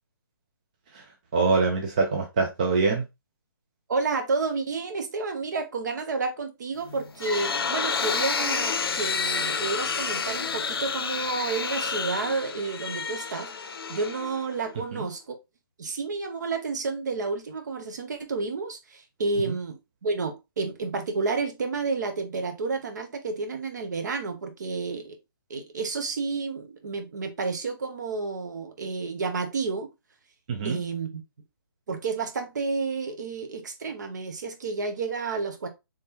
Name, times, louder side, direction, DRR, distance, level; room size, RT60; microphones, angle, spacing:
voice 1, 1.3-3.0 14.9-15.1 19.5-19.6 30.5-30.8, right 4 dB, 20° right, 0.4 m, -24 dB
voice 2, 3.9-15.4 15.8-25.2 25.5-29.9 30.6-31.2 31.9-35.7, right 4 dB, 50° right, 0.8 m, -30 dB
sound 1, 6.8-14.7, left 5 dB, 85° left, 0.5 m, -30 dB
3.6 x 3.2 x 2.7 m
hypercardioid pair, 170°, 12 cm